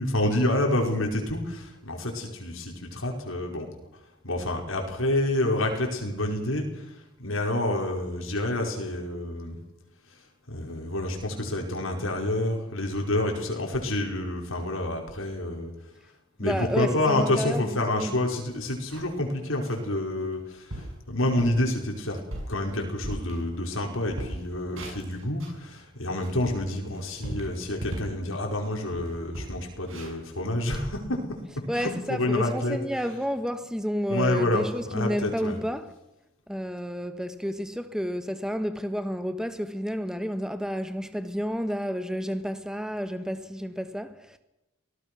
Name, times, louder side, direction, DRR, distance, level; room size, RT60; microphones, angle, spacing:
voice 1, 0.0-3.7 4.2-9.6 10.5-15.7 16.4-22.2 22.5-31.2 31.7-33.1 34.1-35.6, left 1 dB, 85° left, 5.3 m, -28 dB
voice 2, 16.4-18.1 31.7-35.9 36.5-44.4, equal, 5° right, 1.3 m, -30 dB
sound 1, 18.4-19.2 19.6-19.8 20.3-20.4 20.7-21.0 21.4-21.7 22.1-23.8 24.1-25.6 26.0-28.2 28.5-28.7 28.9-31.1, right 1 dB, 80° right, 7.2 m, -39 dB
24.5 x 18.5 x 6.3 m
head